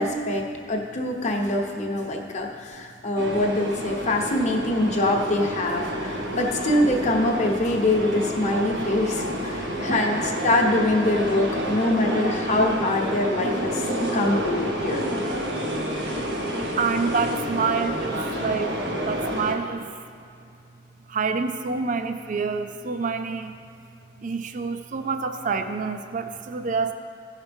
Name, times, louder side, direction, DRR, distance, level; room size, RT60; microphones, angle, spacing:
voice 1, 0.0-13.8 14.1-15.0, left 1 dB, 40° left, 1 dB, 1.0 m, -24 dB
sound 1, 3.2-19.5, equal, 70° right, 1.6 m, -29 dB
voice 2, 16.8-18.8 19.0-19.8 21.1-23.5 24.2-26.9, right 5 dB, 45° right, 8 dB, 0.4 m, -27 dB
15.5 x 5.7 x 3.5 m, 2.5 s
head